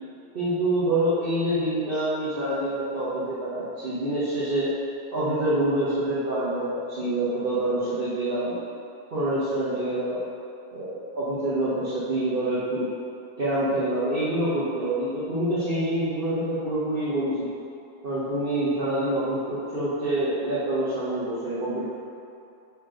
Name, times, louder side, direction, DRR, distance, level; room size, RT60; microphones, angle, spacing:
voice 1, 0.3-4.7 5.1-8.6 9.1-10.2 10.7-12.9 13.4-17.5 18.0-21.9, right 1 dB, 60° right, -11 dB, 1.4 m, -26 dB
7.0 x 3.2 x 5.0 m, 2.6 s
omnidirectional pair, 1.0 m